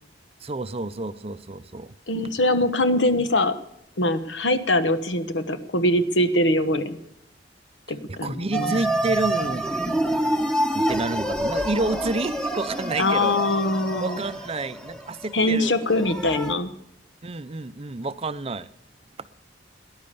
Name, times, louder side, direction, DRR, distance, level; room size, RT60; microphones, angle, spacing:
voice 1, 0.4-1.9 8.1-9.7 10.7-13.4 14.0-15.7 17.2-18.7, right 2 dB, 35° right, 13 dB, 0.6 m, -29 dB
voice 2, 2.1-3.5 4.0-7.0 7.9-8.7 13.0-14.2 15.3-16.7, left 1 dB, 80° left, 10 dB, 1.2 m, -22 dB
sound 1, 8.5-16.5, right 1 dB, 5° left, 1.2 m, -27 dB
19.0 x 10.5 x 6.9 m, 0.80 s
head